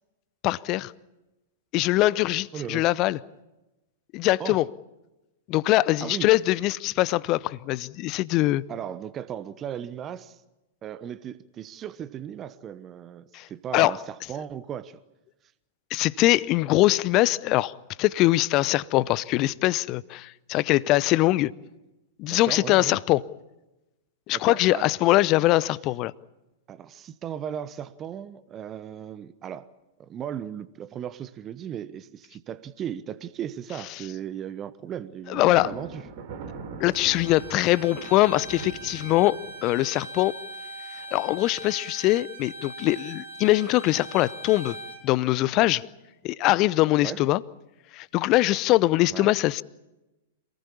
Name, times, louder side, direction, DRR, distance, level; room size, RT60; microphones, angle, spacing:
voice 1, 0.4-0.9 1.7-3.2 4.1-4.6 5.5-8.6 13.3-13.5 13.7-14.0 15.9-17.7 18.0-21.5 22.2-23.2 24.3-26.1 35.3-35.7 36.8-40.3 41.1-44.8 45.0-45.8 46.2-47.4 47.9-49.6, left 17 dB, 35° left, 0.7 m, -22 dB
voice 2, 2.5-2.8 4.4-4.7 6.0-6.3 8.7-10.4 10.8-15.0 22.3-23.0 24.3-24.9 26.7-29.7 30.0-36.0 47.0-47.2 49.1-49.3, right 9 dB, 25° right, 1.0 m, -36 dB
Thunder, 35.3-39.9, right 5 dB, 50° right, 4.0 m, -41 dB
Bowed string instrument, 36.9-45.0, right 2 dB, 85° right, 6.7 m, -41 dB
27.0 x 19.5 x 7.2 m
figure-of-eight pair, 100°, 0 cm